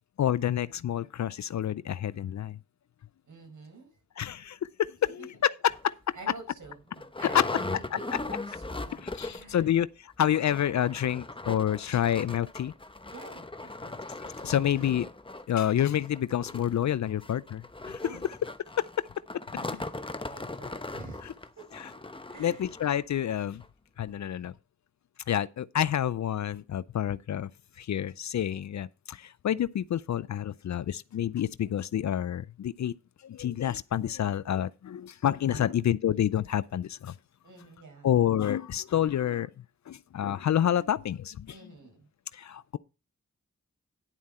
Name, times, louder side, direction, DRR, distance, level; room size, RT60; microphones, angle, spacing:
voice 1, 0.2-2.6 4.2-4.7 5.2-5.9 7.2-7.5 9.2-12.7 14.2-15.1 15.5-18.0 18.8-18.9 22.4-23.6 24.0-24.5 25.3-27.5 27.8-32.9 33.2-37.1 38.0-39.5 39.9-41.5 42.3-42.8, left 10 dB, 65° left, 0.5 m, -28 dB
voice 2, 3.3-3.9 5.0-5.3 6.1-9.8 13.1-14.0 18.0-18.2 19.5-19.9 20.2-21.4 22.3-22.7 35.5-35.8 37.4-38.1 41.5-42.1, right 3 dB, 75° right, 5.4 m, -48 dB
sound 1, 5.7-5.8 6.3-6.4 6.6-9.6 9.8-9.9 10.2-23.0 23.6-23.7 24.1-24.2, left 2 dB, 15° left, 0.9 m, -39 dB
11.0 x 7.2 x 4.3 m
cardioid pair, 45°, 31 cm